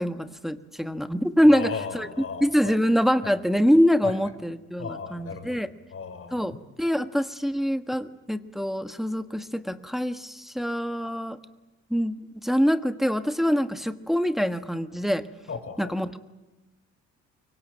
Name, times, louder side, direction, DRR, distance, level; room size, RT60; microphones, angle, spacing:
voice 1, 0.0-2.1 2.4-5.7 6.3-6.5 6.8-11.4 11.9-15.3 15.8-16.2, equal, ahead, 9 dB, 1.4 m, -24 dB
voice 2, 1.5-2.7 3.2-3.3 4.0-4.1 4.8-5.6 5.9-6.6 15.5-16.0, left 5 dB, 45° left, 7 dB, 5.5 m, -36 dB
23.5 x 23.5 x 9.1 m, 1.1 s
cardioid pair, 90°, 30 cm